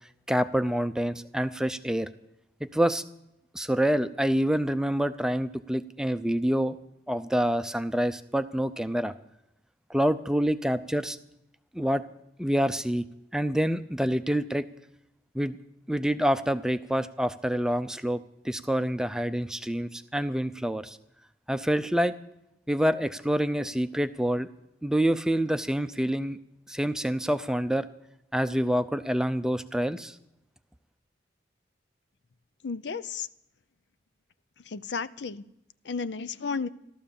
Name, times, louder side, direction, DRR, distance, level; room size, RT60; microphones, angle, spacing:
voice 1, 0.3-2.1 2.6-3.0 3.5-6.8 7.1-9.1 9.9-11.2 11.7-12.0 12.4-13.0 13.3-14.7 15.3-15.6 15.9-21.0 21.5-22.1 22.7-24.5 24.8-26.4 26.7-27.9 28.3-30.2, equal, 5° right, 10 dB, 0.5 m, -27 dB
voice 2, 32.6-33.3 34.7-35.4 35.8-36.7, left 5 dB, 75° left, 15 dB, 0.6 m, -33 dB
15.0 x 13.0 x 7.1 m, 0.82 s
head